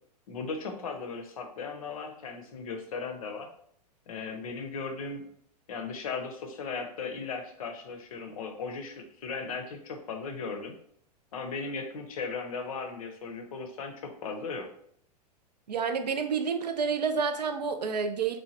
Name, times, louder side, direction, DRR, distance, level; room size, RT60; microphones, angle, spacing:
voice 1, 0.3-3.5 4.1-5.2 5.7-10.7 11.3-14.7, left 4 dB, 60° left, 4 dB, 0.6 m, -37 dB
voice 2, 15.7-18.4, right 5 dB, 75° right, 7 dB, 0.4 m, -29 dB
3.1 x 2.1 x 2.7 m, 0.63 s
figure-of-eight pair, 105°, 21 cm